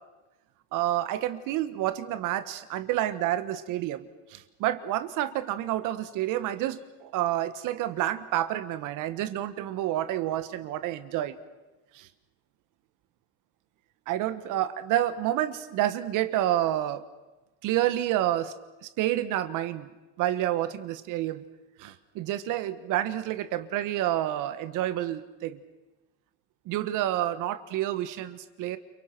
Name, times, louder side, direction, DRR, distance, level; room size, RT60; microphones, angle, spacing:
voice 1, 0.7-11.3 11.9-12.1 14.1-17.0 17.6-18.5 18.8-19.9 20.2-21.4 21.8-25.6 26.7-28.8, right 13 dB, 60° right, 12 dB, 1.4 m, -29 dB
30.0 x 24.0 x 6.0 m, 1.1 s
cardioid pair, 125°, 36 cm